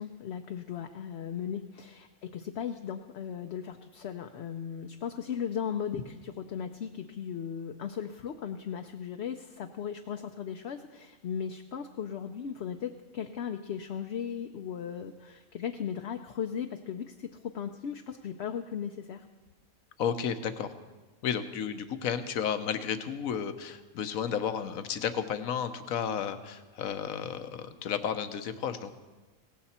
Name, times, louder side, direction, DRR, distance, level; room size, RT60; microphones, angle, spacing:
voice 1, 0.0-17.3 17.5-19.2, left 8 dB, 60° left, 5 dB, 0.8 m, -37 dB
voice 2, 20.0-20.7 21.2-28.9, left 8 dB, 75° left, 10 dB, 1.3 m, -32 dB
17.5 x 15.0 x 4.3 m, 1.2 s
omnidirectional pair, 1.5 m